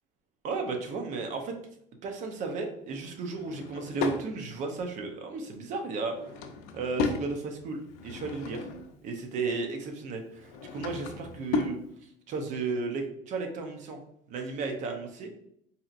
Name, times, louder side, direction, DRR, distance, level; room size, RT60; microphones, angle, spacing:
voice 1, 0.4-1.5 2.0-6.1 6.7-8.7 9.0-11.8 12.3-14.0 14.3-15.3, right 4 dB, 55° right, 4 dB, 0.7 m, -34 dB
Drawer open or close / Wood, 3.3-4.3 6.0-7.3 7.8-9.0 10.3-11.8, left 4 dB, 80° left, 0.5 m, -34 dB
4.1 x 2.8 x 2.5 m, 0.72 s
cardioid pair, 130°, 15 cm